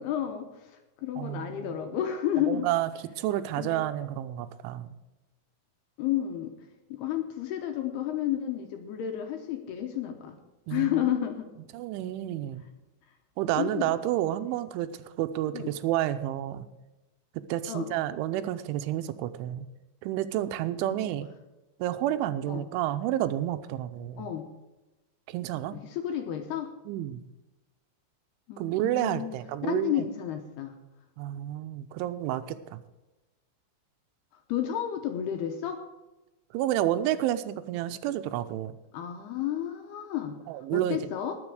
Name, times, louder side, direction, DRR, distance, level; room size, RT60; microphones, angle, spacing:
voice 1, 0.0-2.7 3.6-3.8 6.0-6.5 6.9-10.4 10.7-11.5 13.6-14.0 15.5-15.7 17.7-17.9 20.8-21.1 22.5-22.7 24.2-24.5 25.8-26.7 28.5-29.4 29.7-30.8 34.5-35.8 38.9-40.4 40.7-41.3, left 11 dB, 75° left, 5 dB, 2.6 m, -31 dB
voice 2, 1.2-1.8 2.5-2.9 3.2-5.0 10.7-11.1 11.7-12.6 13.4-14.9 15.2-16.7 17.5-19.7 20.0-21.3 21.8-24.3 25.3-25.8 26.9-27.3 28.6-30.1 31.2-32.8 36.5-38.7 40.5-41.1, right 13 dB, 85° right, 11 dB, 3.1 m, -30 dB
19.5 x 7.0 x 4.9 m, 1.0 s
omnidirectional pair, 5.5 m